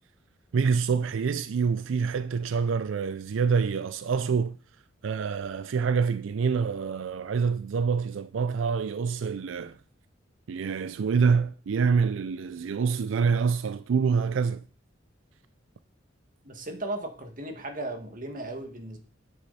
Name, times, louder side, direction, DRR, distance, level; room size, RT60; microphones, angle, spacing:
voice 1, 0.5-4.6 5.0-9.8 10.5-14.6, right 5 dB, 90° right, 0.4 m, -26 dB
voice 2, 16.4-19.0, right 1 dB, 45° right, 1.9 m, -36 dB
9.7 x 8.3 x 4.2 m
head